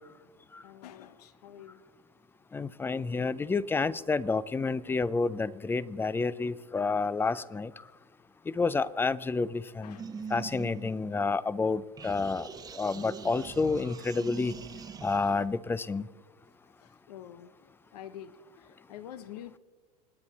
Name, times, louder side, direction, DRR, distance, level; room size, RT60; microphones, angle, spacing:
voice 1, 0.6-1.8 9.8-10.1 16.8-19.6, left 10 dB, 80° left, 1.0 m, -47 dB
voice 2, 2.5-7.7 8.5-10.0 10.3-12.5 12.8-14.5 15.0-16.0, left 4 dB, 10° left, 0.4 m, -29 dB
sound 1, 10.0-11.6 12.0-15.5, right 6 dB, 20° right, 1.0 m, -43 dB
26.5 x 9.9 x 4.2 m
supercardioid pair, 115°, 20 cm